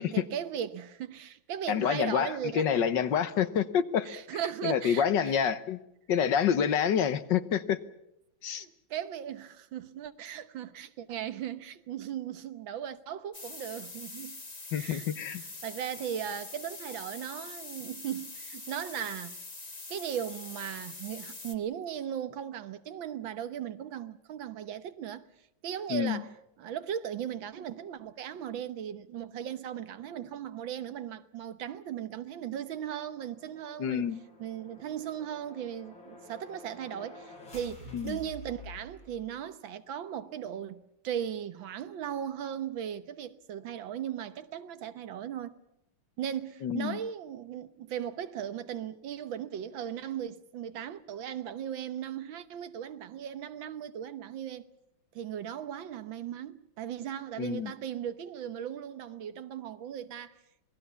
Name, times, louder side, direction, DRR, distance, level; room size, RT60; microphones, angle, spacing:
voice 1, 0.1-2.6 4.1-5.4 8.5-14.4 14.7-15.1 15.6-19.4 19.9-25.3 25.6-26.3 26.6-34.1 34.4-45.6 46.2-54.6 55.1-60.4, right 9 dB, 85° right, 1.8 m, -37 dB
voice 2, 1.7-4.1 4.6-5.8 6.1-7.8 8.4-8.6 14.7-15.4 25.9-26.2 33.8-34.2 37.9-38.2 46.6-47.0 57.4-57.7, left 8 dB, 70° left, 1.7 m, -27 dB
sound 1, 13.3-21.6, left 3 dB, 25° left, 1.4 m, -44 dB
sound 2, 32.6-39.4, left 1 dB, 85° left, 7.8 m, -50 dB
27.0 x 19.5 x 6.9 m
omnidirectional pair, 2.1 m